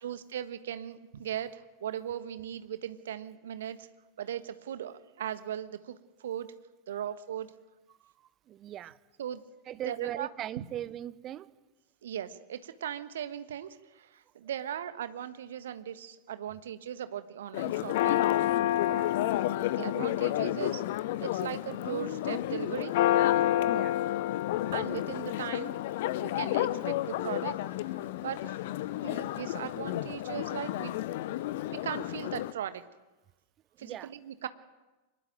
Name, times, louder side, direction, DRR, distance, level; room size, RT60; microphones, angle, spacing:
voice 1, 0.0-3.9 4.2-6.5 6.9-7.5 9.2-9.4 9.8-10.3 10.5-10.6 12.0-18.2 19.8-20.8 21.2-23.0 24.7-25.7 26.2-28.6 29.0-30.9 31.7-32.8 33.8-34.5, right 10 dB, 60° right, 11 dB, 1.4 m, -38 dB
voice 2, 8.5-9.0 9.7-11.5 18.8-19.7 23.6-24.0 33.8-34.1, right 12 dB, 30° right, 16 dB, 1.0 m, -40 dB
Church bell, 17.5-32.5, left 14 dB, 50° left, 0.9 m, -30 dB
24.5 x 20.5 x 9.2 m, 1.1 s
figure-of-eight pair, 90°, 0 cm